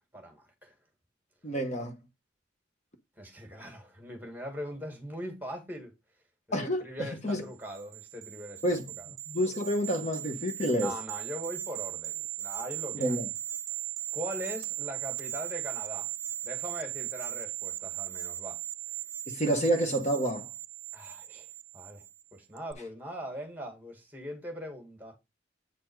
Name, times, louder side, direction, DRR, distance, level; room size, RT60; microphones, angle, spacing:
voice 1, 0.1-0.7 3.2-5.9 6.8-9.1 10.7-13.2 14.1-16.1 16.4-18.6 20.9-21.5 21.7-22.0 22.3-25.1, equal, 10° right, 2.0 m, -41 dB
voice 2, 1.4-2.0 6.5-7.5 8.6-8.9 9.3-10.9 12.9-13.3 19.3-20.5, equal, 35° left, 1.2 m, -29 dB
sound 1, 7.6-22.2 22.6-22.7, right 13 dB, 80° right, 0.5 m, -38 dB
8.6 x 4.3 x 4.7 m
head